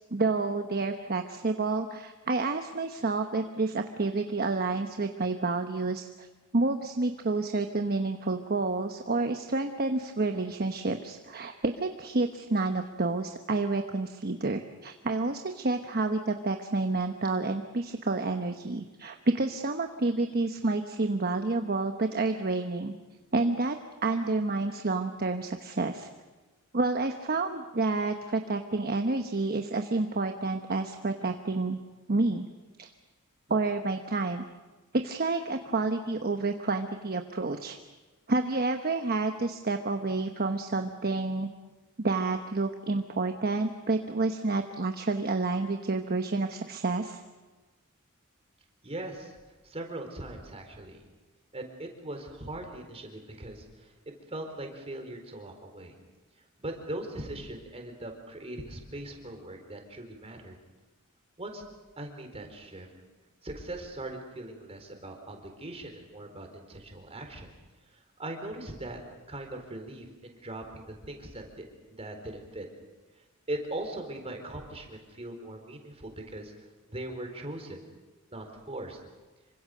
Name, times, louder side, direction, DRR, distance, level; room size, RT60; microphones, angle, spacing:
voice 1, 0.1-6.3 6.5-22.9 23.3-23.8 24.0-26.1 26.7-31.8 32.1-32.5 32.8-32.9 33.5-34.5 34.9-37.8 38.3-41.5 42.0-47.2, right 3 dB, 45° right, 6 dB, 1.1 m, -29 dB
voice 2, 48.8-49.4 49.6-51.0 51.5-55.9 56.6-60.6 61.4-61.6 62.0-62.9 63.4-67.5 67.9-69.0 69.3-72.7 73.2-76.5 76.9-77.9 78.3-79.0, right 1 dB, 30° right, 3 dB, 4.2 m, -40 dB
27.0 x 24.5 x 6.7 m, 1.2 s
head